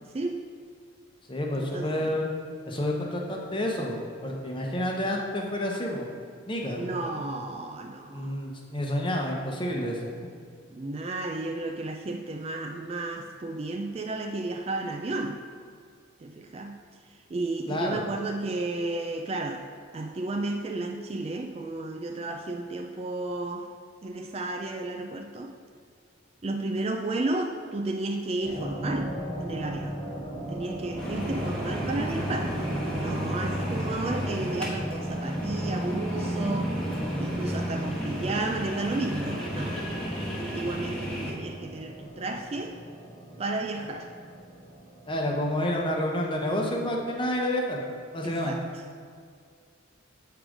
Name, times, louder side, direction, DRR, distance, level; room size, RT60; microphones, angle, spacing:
voice 1, 0.1-0.5 1.5-2.2 6.8-8.4 10.7-15.4 16.2-16.8 17.1-19.7 19.9-23.7 24.0-25.5 26.4-30.0 30.5-32.5 32.9-36.7 37.2-39.8 40.3-42.8 43.4-44.1 48.2-48.6, right 2 dB, 30° right, 4 dB, 0.3 m, -33 dB
voice 2, 1.3-2.3 2.7-6.1 6.5-7.2 8.1-10.0 17.7-18.0 45.1-47.8 48.1-48.5, left 1 dB, 25° left, 0 dB, 0.8 m, -29 dB
sound 1, 28.4-47.1, right 1 dB, 90° right, 1.7 m, -36 dB
sound 2, 31.0-41.3, equal, 5° left, 1.3 m, -33 dB
7.8 x 4.7 x 5.0 m, 2.2 s
head